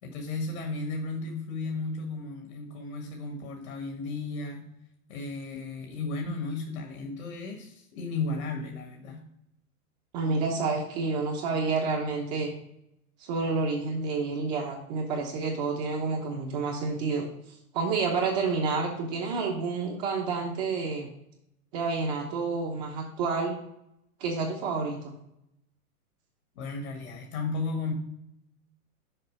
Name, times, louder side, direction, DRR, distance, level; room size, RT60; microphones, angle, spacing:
voice 1, 0.0-4.7 5.1-9.2 26.5-27.9, left 3 dB, 65° left, 2 dB, 1.7 m, -34 dB
voice 2, 10.1-12.5 13.2-17.3 17.7-21.1 21.7-23.5 24.2-25.2, right 4 dB, 30° right, 0 dB, 1.0 m, -29 dB
6.7 x 4.9 x 5.0 m, 0.79 s
hypercardioid pair, 165°, 44 cm